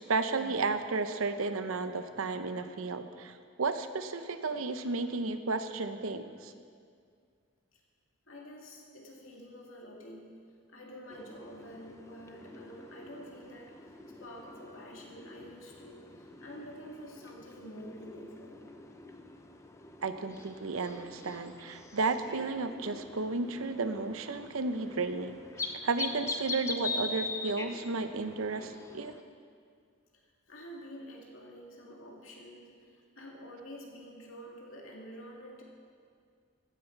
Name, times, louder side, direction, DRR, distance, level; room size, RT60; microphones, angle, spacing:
voice 1, 0.0-6.5 20.0-29.2, right 3 dB, 90° right, 9 dB, 0.7 m, -33 dB
voice 2, 8.3-10.3 10.7-18.6 30.1-35.6, equal, 80° left, -1 dB, 2.2 m, -48 dB
sound 1, 11.1-29.2, left 3 dB, 15° left, 0.5 m, -43 dB
14.5 x 9.6 x 4.5 m, 2.2 s
head